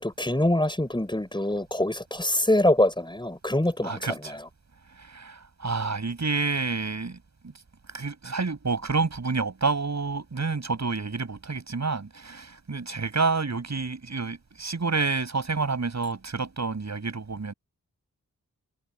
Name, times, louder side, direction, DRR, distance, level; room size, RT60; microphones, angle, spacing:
voice 1, 0.0-4.5, left 1 dB, 15° left, 5.4 m, -25 dB
voice 2, 3.8-4.4 5.0-7.5 7.9-17.5, right 4 dB, 55° right, 7.2 m, -29 dB
wide cardioid pair, 110°, 33 cm